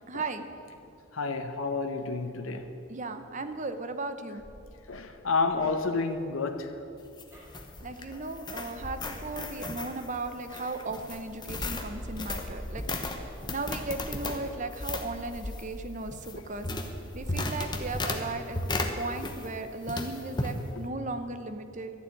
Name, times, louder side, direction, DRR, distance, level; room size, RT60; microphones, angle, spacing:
voice 1, 0.1-0.4 2.9-4.4 7.8-12.8 13.5-16.7 17.1-18.6 18.9-21.9, right 3 dB, 35° right, 8 dB, 0.8 m, -36 dB
voice 2, 1.1-2.7 4.9-6.7 11.8-11.9, left 4 dB, 75° left, 6 dB, 0.9 m, -30 dB
sound 1, 4.4-10.4 10.9-18.8, equal, 10° right, 3.8 m, -47 dB
sound 2, 7.0-19.6 19.9-20.6, left 2 dB, 20° left, 0.9 m, -35 dB
12.5 x 7.4 x 9.8 m, 2.6 s
head